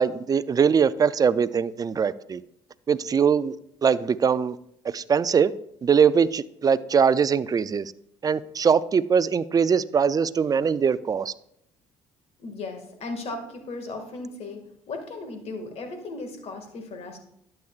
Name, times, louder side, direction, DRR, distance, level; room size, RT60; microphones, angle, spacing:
voice 1, 0.0-2.4 2.9-3.5 3.8-4.6 4.8-5.5 5.8-7.9 8.2-11.3, right 6 dB, 30° right, 0.4 m, -22 dB
voice 2, 12.4-17.2, left 3 dB, 55° left, 2.0 m, -36 dB
11.5 x 7.9 x 2.4 m
supercardioid pair, 70°, 13 cm